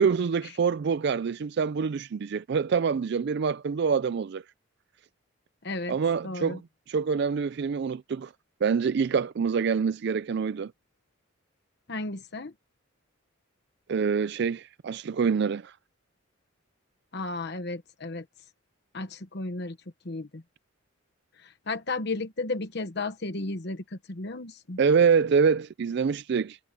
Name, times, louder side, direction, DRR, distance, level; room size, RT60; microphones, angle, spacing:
voice 1, 0.0-4.4 5.9-6.6 6.9-8.3 8.6-10.7 13.9-15.8 24.8-26.6, right 6 dB, 50° right, 0.3 m, -25 dB
voice 2, 5.6-6.0 6.2-6.6 11.9-12.5 17.1-18.2 18.9-19.8 20.0-20.4 21.4-24.8, left 2 dB, 50° left, 1.1 m, -34 dB
head